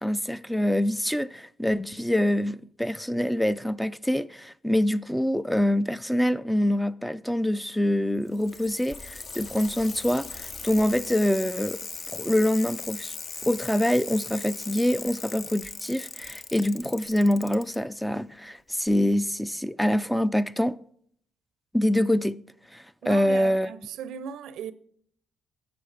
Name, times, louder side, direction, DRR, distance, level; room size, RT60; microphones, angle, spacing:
voice 1, 0.0-11.8 12.1-13.1 13.4-20.8 21.7-22.4 22.7-23.7, left 1 dB, 5° left, 0.3 m, -25 dB
Bicycle, 8.2-17.8 18.9-19.0, left 4 dB, 40° left, 0.6 m, -39 dB
voice 2, 23.0-24.7, right 8 dB, 85° right, 0.5 m, -37 dB
9.1 x 6.8 x 3.2 m
cardioid pair, 90°, 0 cm